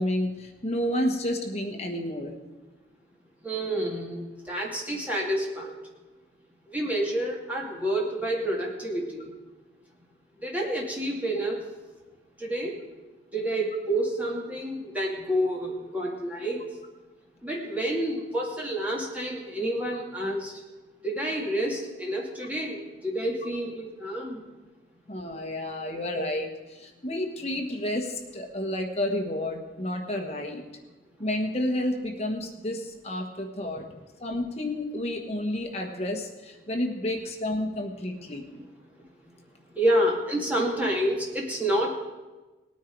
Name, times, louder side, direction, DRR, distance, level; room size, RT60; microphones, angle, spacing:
voice 1, 0.0-2.3 25.1-30.6 31.2-33.8 34.2-38.4, left 1 dB, 35° left, 3 dB, 1.4 m, -30 dB
voice 2, 3.4-5.7 6.7-9.3 10.4-11.6 12.4-12.8 13.3-16.6 17.4-20.5 21.0-24.4 38.5-38.7 39.7-41.9, right 1 dB, 10° right, -2 dB, 2.4 m, -29 dB
19.0 x 9.3 x 4.6 m, 1.2 s
head